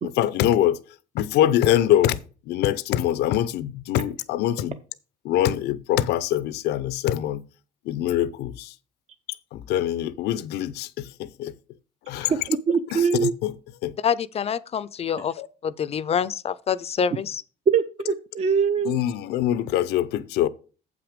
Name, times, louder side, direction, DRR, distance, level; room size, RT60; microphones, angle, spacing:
voice 1, 0.0-0.8 1.1-2.2 2.5-4.8 5.2-7.4 7.9-8.7 9.5-11.5 12.1-12.3 12.9-13.5 13.8-13.9 15.4-15.5 18.8-20.5, left 12 dB, 80° left, 0.6 m, -24 dB
voice 2, 12.3-13.3 17.7-19.0, right 6 dB, 40° right, 0.6 m, -23 dB
voice 3, 14.0-15.3 15.6-17.4, left 7 dB, 35° left, 0.4 m, -26 dB
7.9 x 6.0 x 5.1 m
cardioid pair, 110°, 17 cm